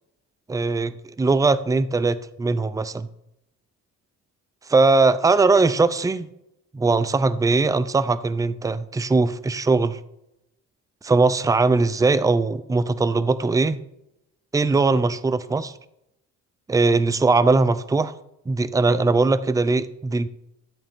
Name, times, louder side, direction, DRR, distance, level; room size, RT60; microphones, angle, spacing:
voice 1, 0.5-3.1 4.7-6.3 6.7-10.0 11.0-13.8 14.5-15.7 16.7-18.1 18.5-20.3, right 3 dB, 10° right, 15 dB, 0.5 m, -20 dB
13.5 x 8.5 x 3.6 m, 0.82 s
cardioid pair, 90°, 30 cm